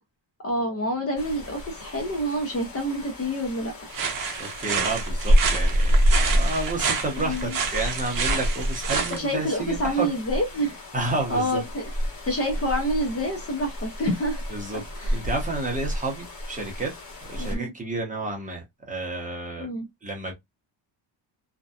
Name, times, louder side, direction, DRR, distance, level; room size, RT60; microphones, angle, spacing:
voice 1, 0.4-3.9 7.2-7.6 9.0-10.8 11.3-11.9 12.2-14.4 15.0-15.2 17.4-17.7 19.6-19.9, equal, 35° left, 0.5 m, -27 dB
sound 1, 1.2-17.6, equal, 50° left, 1.1 m, -28 dB
sound 2, 3.9-9.2, right 5 dB, 50° right, 0.8 m, -29 dB
voice 2, 4.4-6.0 6.3-10.1 10.9-11.6 14.5-14.8 15.1-16.9 17.3-19.7 20.0-20.3, right 2 dB, 20° right, 0.7 m, -31 dB
2.6 x 2.1 x 2.2 m
cardioid pair, 170°, 43 cm